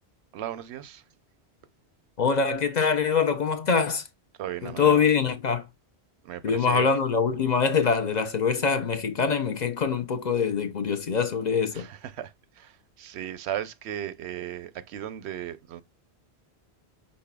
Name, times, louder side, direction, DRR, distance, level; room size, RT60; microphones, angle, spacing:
voice 1, 0.3-1.0 4.4-5.0 6.2-6.9 11.7-12.3 12.6-12.7 13.0-15.8, right 11 dB, 85° right, 0.9 m, -36 dB
voice 2, 2.2-4.0 4.6-5.7 6.4-11.9, left 6 dB, 50° left, 0.6 m, -24 dB
5.4 x 3.9 x 2.2 m
omnidirectional pair, 1.1 m